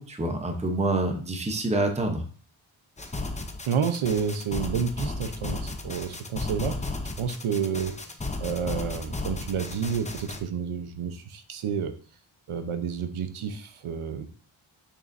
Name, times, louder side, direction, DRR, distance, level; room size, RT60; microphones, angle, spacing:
voice 1, 0.0-2.2, right 2 dB, 15° right, 4 dB, 0.8 m, -27 dB
sound 1, 3.0-10.4, left 2 dB, 15° left, 0.6 m, -34 dB
voice 2, 3.7-6.9 7.2-12.0 12.5-14.3, right 6 dB, 85° right, 8 dB, 0.9 m, -30 dB
6.7 x 6.2 x 2.6 m, 0.40 s
wide cardioid pair, 160°, 49 cm